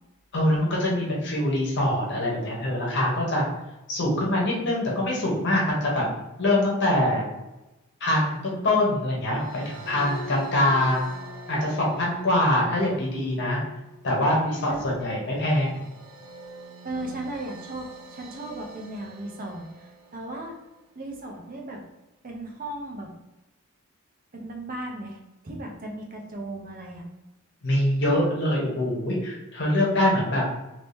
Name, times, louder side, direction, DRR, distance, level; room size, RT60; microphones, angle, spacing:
voice 1, 0.3-3.4 3.9-6.0 6.4-7.3 8.0-11.1 11.5-13.6 14.0-15.8 27.6-30.4, left 1 dB, 55° left, -3 dB, 1.1 m, -24 dB
sound 1, 9.3-20.7, right 1 dB, 75° right, 0.9 m, -45 dB
voice 2, 16.8-20.5 21.0-21.8 22.2-23.1 24.3-25.2 25.4-27.1, right 1 dB, 40° right, 1 dB, 0.6 m, -36 dB
3.0 x 2.8 x 3.4 m, 1.0 s
head